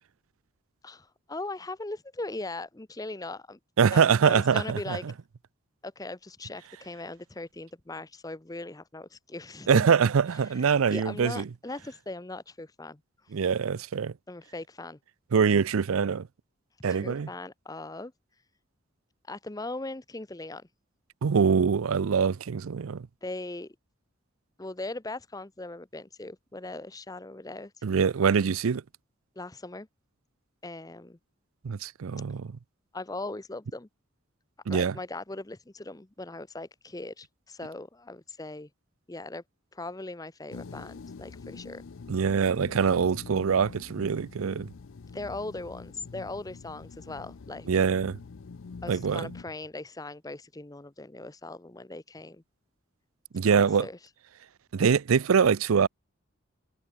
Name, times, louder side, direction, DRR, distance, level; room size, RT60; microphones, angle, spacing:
voice 1, 0.8-3.6 3.9-5.0 5.8-9.8 10.5-13.0 14.3-15.0 16.9-18.1 19.3-20.7 23.2-23.8 24.6-27.7 29.4-29.9 30.6-31.2 32.9-33.9 34.7-38.7 39.1-39.4 39.7-41.8 45.1-47.7 48.8-52.4 53.5-54.0, left 2 dB, 15° left, 0.7 m, -39 dB
voice 2, 3.8-5.0 9.7-11.4 13.3-14.1 15.3-16.3 16.8-17.3 21.2-23.1 27.8-28.8 31.6-32.5 34.7-35.0 42.1-44.7 47.7-48.2 48.9-49.3 53.3-53.9 54.7-55.9, right 6 dB, 90° right, 0.5 m, -24 dB
sound 1, 40.5-49.4, left 4 dB, 75° left, 0.5 m, -45 dB
head